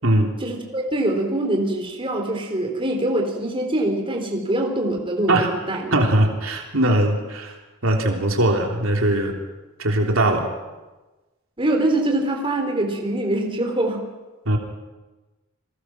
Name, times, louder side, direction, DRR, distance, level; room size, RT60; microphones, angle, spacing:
voice 1, 0.4-5.9 11.6-14.0, right 1 dB, 25° right, 2 dB, 3.7 m, -24 dB
voice 2, 5.9-7.5 7.8-9.3 9.8-10.5 14.4-14.6, right 1 dB, 80° right, 2 dB, 3.4 m, -20 dB
29.0 x 21.0 x 6.1 m, 1.2 s
head